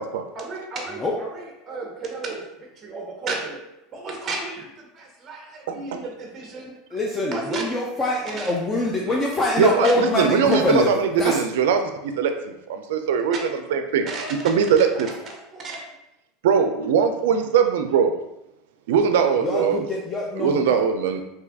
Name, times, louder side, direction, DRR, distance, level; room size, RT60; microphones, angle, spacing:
voice 1, 0.3-3.6 3.9-6.8 7.3-7.7 8.2-8.6 9.5-10.1 10.5-10.9 13.3-13.4 14.0-15.8, right 3 dB, 25° right, 1 dB, 0.6 m, -34 dB
voice 2, 5.7-6.0 9.6-13.4 13.7-14.1 14.4-15.1 16.4-18.1 18.9-19.8 20.4-21.2, right 7 dB, 85° right, 7 dB, 0.3 m, -21 dB
voice 3, 6.9-10.9 11.2-11.4 19.4-20.8, left 2 dB, 20° left, -2 dB, 0.3 m, -24 dB
2.7 x 2.3 x 3.4 m, 0.88 s
supercardioid pair, 140°, 0 cm